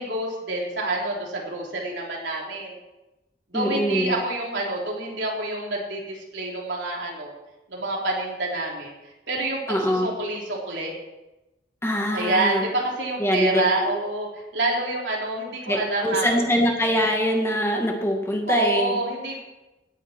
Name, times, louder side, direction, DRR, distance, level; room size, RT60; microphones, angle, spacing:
voice 1, 0.0-2.8 3.5-7.3 7.7-8.9 9.3-11.0 12.1-16.4 18.5-19.4, right 2 dB, 80° right, -2 dB, 3.7 m, -27 dB
voice 2, 3.5-4.1 9.7-10.1 11.8-12.6 13.2-13.6 15.6-19.0, equal, 15° left, 1 dB, 1.9 m, -23 dB
17.0 x 9.9 x 4.5 m, 1.0 s
head